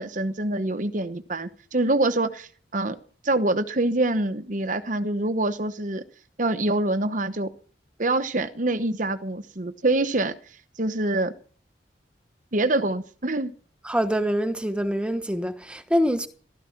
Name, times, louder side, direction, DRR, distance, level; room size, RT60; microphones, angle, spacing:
voice 1, 0.0-3.0 3.2-6.0 6.4-7.5 8.0-11.3 12.5-13.5, right 2 dB, 45° right, 0.9 m, -25 dB
voice 2, 13.8-16.3, equal, 5° right, 1.1 m, -25 dB
15.0 x 13.0 x 5.9 m
head